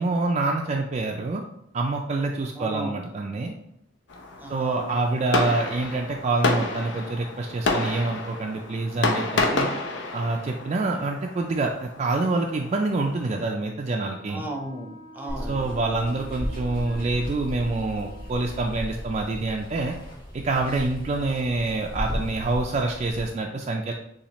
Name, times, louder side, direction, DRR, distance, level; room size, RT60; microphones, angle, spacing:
voice 1, 0.0-1.4 1.7-3.5 4.5-9.7 10.1-14.5 15.5-20.0 20.3-23.9, right 3 dB, 35° right, 1 dB, 0.3 m, -26 dB
voice 2, 2.6-2.9 4.4-4.9 14.3-15.6, right 1 dB, 10° right, 1 dB, 0.7 m, -35 dB
Fireworks, 4.1-13.4, left 3 dB, 75° left, 0.7 m, -30 dB
Wind instrument woodwind instrument, 14.0-18.8, right 1 dB, 25° left, 0.7 m, -48 dB
Water, 15.3-23.3, equal, 55° left, 1.8 m, -35 dB
6.8 x 2.4 x 3.0 m, 0.78 s
head